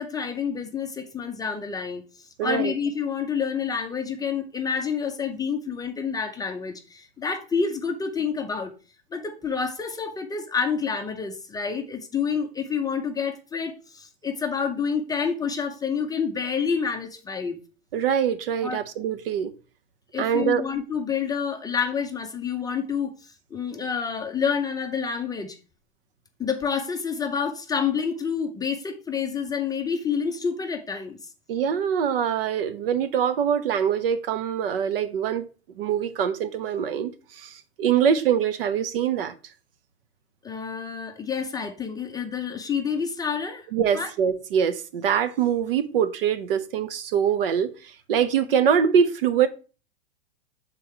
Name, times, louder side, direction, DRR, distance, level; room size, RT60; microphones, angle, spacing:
voice 1, 0.0-2.0 2.4-8.7 9.1-17.6 18.6-18.8 20.1-25.6 26.4-31.2 40.4-43.7 43.9-44.1, left 6 dB, 10° left, 0.6 m, -28 dB
voice 2, 2.4-2.7 17.9-19.5 20.2-20.6 31.5-35.4 35.8-39.3 43.7-49.5, right 8 dB, 55° right, 0.8 m, -24 dB
7.0 x 3.8 x 4.5 m
figure-of-eight pair, 105°, 33 cm